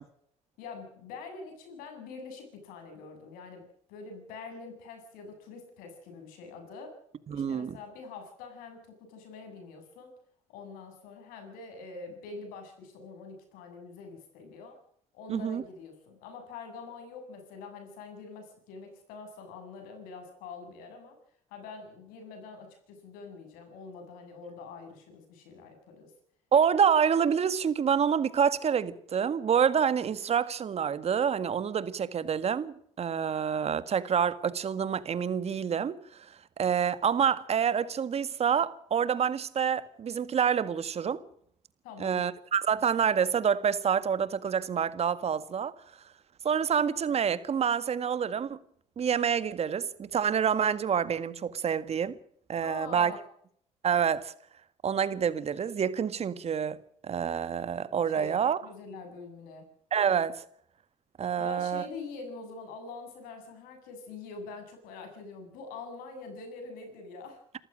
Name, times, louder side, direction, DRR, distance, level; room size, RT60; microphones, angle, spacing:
voice 1, 0.6-7.0 7.3-10.1 10.5-14.8 15.1-21.2 21.5-26.1 41.8-42.2 52.6-53.2 58.1-59.7 61.4-67.4, left 4 dB, 80° left, 7.7 m, -45 dB
voice 2, 7.3-7.8 15.3-15.6 26.5-36.0 36.6-41.2 42.0-45.7 46.4-48.6 49.0-52.2 52.5-53.1 53.8-54.3 54.8-56.8 57.0-58.6 59.9-60.4 61.2-61.9, right 7 dB, 45° right, 1.9 m, -27 dB
27.5 x 14.5 x 6.4 m
supercardioid pair, 75°, 15 cm